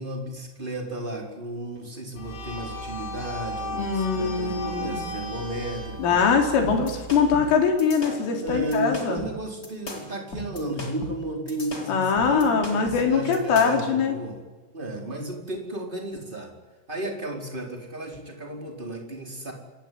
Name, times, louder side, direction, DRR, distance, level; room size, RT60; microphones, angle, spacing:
voice 1, 0.0-6.2 8.0-14.4 14.7-16.5 16.9-19.5, right 1 dB, 10° right, 2 dB, 4.0 m, -34 dB
sound 1, 2.2-7.6, equal, 55° left, 6.3 m, -36 dB
voice 2, 3.7-5.0 6.0-9.2 11.9-14.1, left 6 dB, 80° left, 3 dB, 6.4 m, -22 dB
sound 2, 6.6-13.9, left 1 dB, 20° left, 4.1 m, -37 dB
27.0 x 21.5 x 9.6 m, 1.2 s
omnidirectional pair, 5.6 m